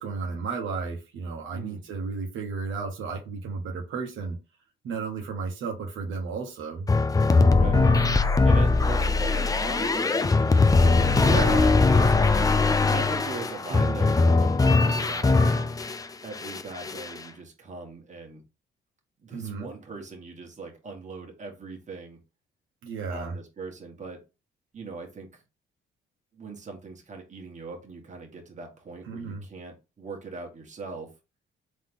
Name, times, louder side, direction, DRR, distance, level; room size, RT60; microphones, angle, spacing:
voice 1, 0.0-4.4 4.8-6.9 11.2-11.8 13.7-14.0 19.3-19.7 22.8-23.4 29.0-29.4, right 4 dB, 75° right, 2 dB, 1.1 m, -33 dB
voice 2, 1.5-1.8 7.5-7.9 8.4-10.8 11.5-15.5 16.2-18.4 19.2-22.2 23.1-24.2 24.7-25.4 26.3-31.1, right 4 dB, 35° right, 2 dB, 1.5 m, -40 dB
sound 1, 6.9-16.0 16.4-17.2, left 3 dB, 20° left, 0.4 m, -21 dB
3.7 x 3.2 x 3.7 m, 0.28 s
cardioid pair, 90°, 20 cm